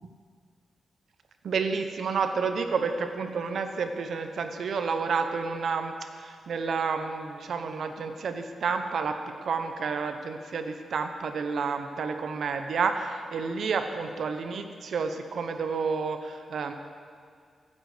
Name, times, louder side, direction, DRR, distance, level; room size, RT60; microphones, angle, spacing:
voice 1, 1.4-16.7, right 5 dB, 70° right, 7 dB, 1.0 m, -30 dB
15.0 x 9.7 x 5.1 m, 2.1 s
wide cardioid pair, 130°, 0 cm